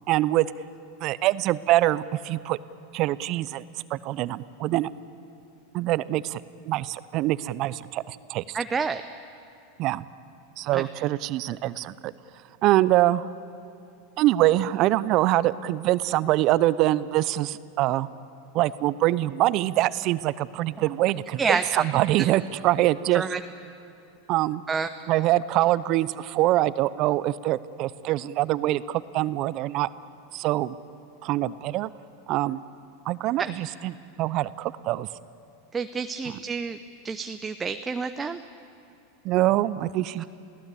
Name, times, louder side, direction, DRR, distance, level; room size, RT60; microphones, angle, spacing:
voice 1, 0.1-0.5 1.0-2.6 2.9-3.6 3.9-4.9 5.7-6.4 6.7-8.6 9.8-10.0 10.6-12.1 12.6-13.3 14.2-18.1 18.5-23.3 24.3-24.6 25.1-29.9 30.3-30.8 31.2-31.9 32.3-32.6 33.1-35.1 36.3-36.4 39.2-40.2, right 15 dB, 50° right, 17 dB, 0.7 m, -24 dB
voice 2, 8.5-9.0 10.7-10.8 21.4-21.8 23.1-23.4 24.7-24.9 33.4-33.5 35.7-36.8 37.0-38.4, right 5 dB, 20° right, 8 dB, 0.7 m, -28 dB
28.5 x 16.5 x 8.4 m, 2.7 s
hypercardioid pair, 105°, 0 cm